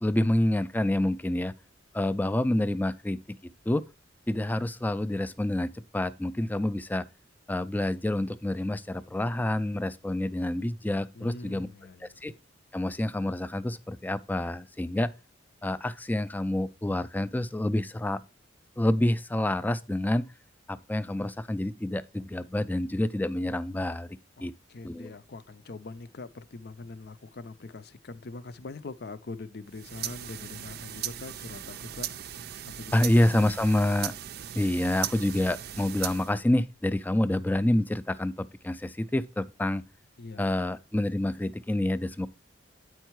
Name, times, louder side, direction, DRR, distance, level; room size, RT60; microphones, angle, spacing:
voice 1, 0.0-1.5 1.9-3.4 3.7-3.9 4.3-7.1 7.5-11.7 12.2-12.3 12.7-15.1 15.6-18.2 18.8-20.3 20.7-24.5 24.8-25.1 32.9-34.1 34.6-39.8 40.4-42.3, left 1 dB, 10° left, 0.3 m, -28 dB
voice 2, 11.1-12.2 24.4-32.1 32.7-33.5 40.2-40.7, left 3 dB, 60° left, 0.6 m, -43 dB
sound 1, 29.7-36.4, right 11 dB, 55° right, 0.5 m, -38 dB
8.9 x 4.6 x 4.5 m
head